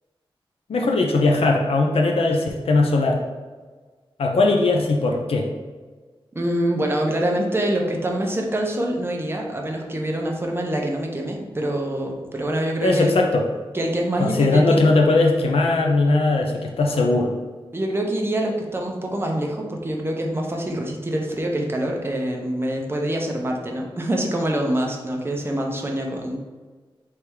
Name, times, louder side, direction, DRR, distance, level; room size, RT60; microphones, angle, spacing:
voice 1, 0.7-3.2 4.2-5.5 12.8-13.4 14.2-17.3, left 2 dB, 85° left, 1 dB, 0.6 m, -19 dB
voice 2, 6.3-13.1 13.7-14.8 17.7-26.4, right 1 dB, 25° right, 0 dB, 0.7 m, -25 dB
3.5 x 3.3 x 4.5 m, 1.4 s
wide cardioid pair, 120°, 10 cm